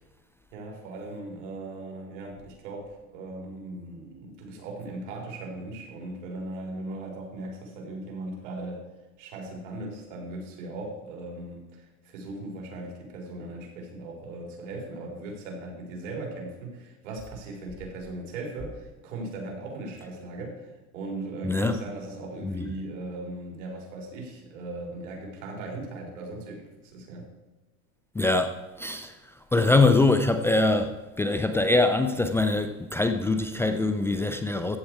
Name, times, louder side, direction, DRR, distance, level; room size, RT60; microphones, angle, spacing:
voice 1, 0.5-8.9 9.2-27.3, right 2 dB, 75° right, 4.6 m, -38 dB
voice 2, 21.4-21.8 22.4-22.7 28.1-34.8, left 2 dB, 5° left, 0.5 m, -24 dB
15.0 x 8.7 x 4.7 m
supercardioid pair, 135°, 37 cm